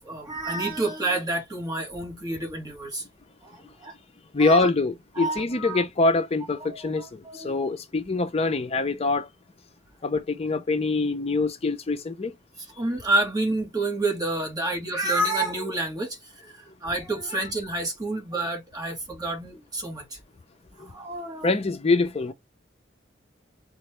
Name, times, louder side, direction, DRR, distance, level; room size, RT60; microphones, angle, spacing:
voice 1, 0.0-3.0 3.4-3.9 4.4-4.7 5.1-5.8 6.6-7.5 12.8-20.2 20.8-21.5, right 2 dB, 20° right, 1.5 m, -29 dB
voice 2, 4.3-9.3 10.0-12.4 20.8-20.9 21.4-22.3, left 3 dB, 30° left, 0.5 m, -24 dB
4.2 x 3.1 x 3.1 m
head